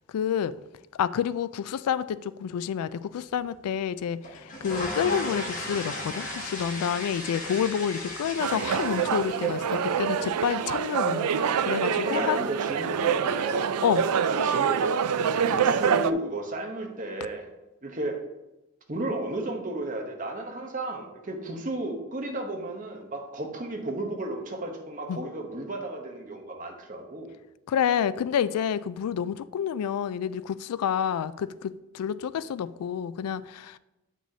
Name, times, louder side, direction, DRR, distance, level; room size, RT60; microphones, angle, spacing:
voice 1, 0.1-0.5 1.0-12.4 13.8-14.0 25.1-25.2 27.7-33.8, left 8 dB, 90° left, 0.3 m, -29 dB
sound 1, 4.2-12.3, left 1 dB, 35° left, 1.6 m, -37 dB
sound 2, 8.4-16.1, right 7 dB, 90° right, 0.4 m, -26 dB
voice 2, 12.0-17.5 17.8-18.2 18.9-27.3, right 1 dB, 35° right, 1.0 m, -34 dB
8.2 x 6.2 x 2.8 m
head